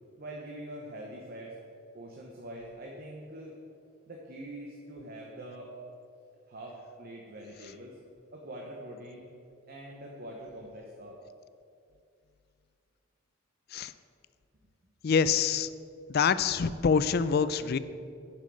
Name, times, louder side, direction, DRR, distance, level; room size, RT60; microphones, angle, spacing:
voice 1, 0.2-1.6 1.9-3.5 4.1-5.7 6.5-8.0 8.3-9.2 9.7-11.2, right 1 dB, 45° right, -1 dB, 1.0 m, -44 dB
voice 2, 15.0-15.7 16.1-17.8, left 6 dB, 50° left, 14 dB, 0.4 m, -25 dB
10.5 x 6.2 x 6.2 m, 2.4 s
head